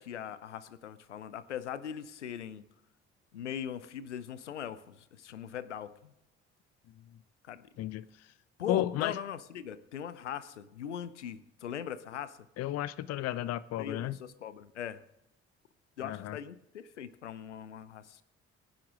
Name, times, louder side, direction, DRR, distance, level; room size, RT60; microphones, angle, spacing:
voice 1, 0.0-2.6 3.3-5.9 7.5-7.6 8.6-12.4 13.8-15.0 16.0-18.2, left 9 dB, 80° left, 0.7 m, -40 dB
voice 2, 8.7-9.2 12.6-14.2 16.0-16.4, left 13 dB, 45° left, 0.6 m, -33 dB
25.0 x 10.5 x 3.7 m
figure-of-eight pair, 45°, 35 cm